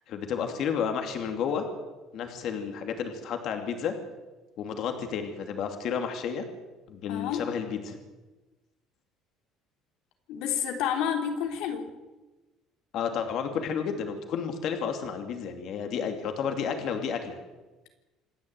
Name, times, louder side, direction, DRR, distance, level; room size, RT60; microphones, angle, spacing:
voice 1, 0.1-1.7 2.1-3.9 4.6-6.4 6.9-8.0 12.9-17.4, left 7 dB, 50° left, 5 dB, 2.7 m, -31 dB
voice 2, 7.1-7.4 10.3-11.9, left 8 dB, 75° left, 4 dB, 3.5 m, -29 dB
27.0 x 10.5 x 9.1 m, 1.2 s
cardioid pair, 160°, 0 cm